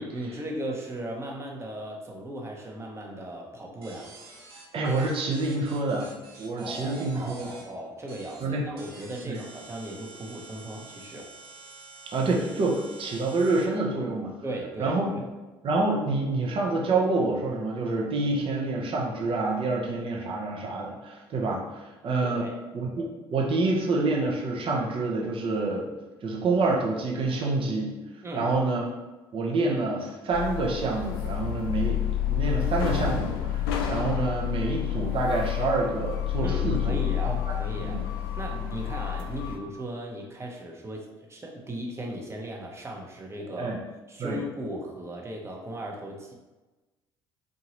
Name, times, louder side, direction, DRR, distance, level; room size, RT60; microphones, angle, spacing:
voice 1, 0.0-4.1 6.6-11.3 14.4-15.2 22.2-22.6 28.2-28.5 36.4-38.0 38.4-43.7 44.1-46.3, right 1 dB, 20° right, 0 dB, 1.0 m, -37 dB
sound 1, 3.8-7.6 8.1-8.4 8.8-13.6, right 3 dB, 85° right, 0.6 m, -48 dB
voice 2, 4.7-7.5 8.4-8.7 9.2-9.4 12.1-14.3 14.8-15.2 15.6-22.5 22.7-25.9 26.2-28.0 28.3-28.8 29.3-33.6 33.9-38.1 38.5-38.6 43.6-43.8 44.2-44.4, right 3 dB, 45° right, -1 dB, 0.9 m, -27 dB
sound 2, 30.3-39.6, left 10 dB, 80° left, 0.4 m, -29 dB
3.9 x 2.6 x 3.0 m, 1.1 s
hypercardioid pair, 55°, 13 cm